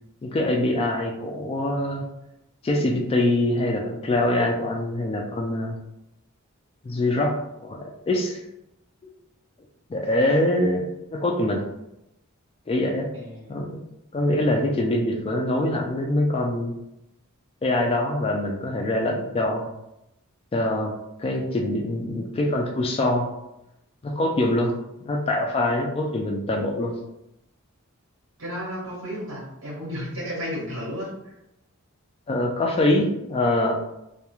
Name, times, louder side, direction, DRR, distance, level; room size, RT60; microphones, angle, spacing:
voice 1, 0.2-2.0 2.6-5.8 6.8-8.4 9.9-11.6 12.7-13.1 13.5-13.8 14.1-16.8 17.6-19.7 20.5-20.9 21.2-23.3 24.0-26.9 32.3-33.8, left 1 dB, 25° left, 1 dB, 0.3 m, -24 dB
voice 2, 13.1-13.5 28.4-31.3, equal, 70° right, -5 dB, 1.1 m, -33 dB
2.3 x 2.2 x 2.9 m, 0.86 s
head